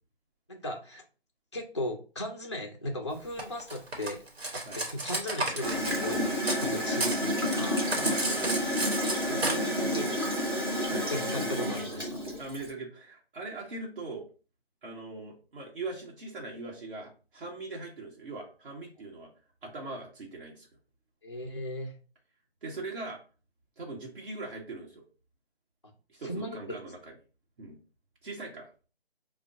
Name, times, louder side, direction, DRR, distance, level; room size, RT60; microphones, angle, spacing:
voice 1, 0.5-1.0 1.5-4.2 4.5-8.0 9.3-10.3 11.1-12.2 21.2-22.0 26.2-26.6, left 1 dB, 30° left, 0 dB, 0.4 m, -37 dB
Cutlery silverware, 3.4-6.7 6.9-9.5, right 2 dB, 75° right, 1.3 m, -32 dB
Gurgling / Toilet flush, 5.6-12.7, equal, 25° right, 0.6 m, -30 dB
voice 2, 7.9-8.8 10.9-11.1 12.4-14.2 14.8-19.3 19.6-20.7 22.6-23.2 23.8-25.0 26.1-27.1 27.6-27.8 28.2-28.7, right 3 dB, 60° right, -2 dB, 1.3 m, -41 dB
5.1 x 2.2 x 2.7 m, 0.36 s
figure-of-eight pair, 165°, 31 cm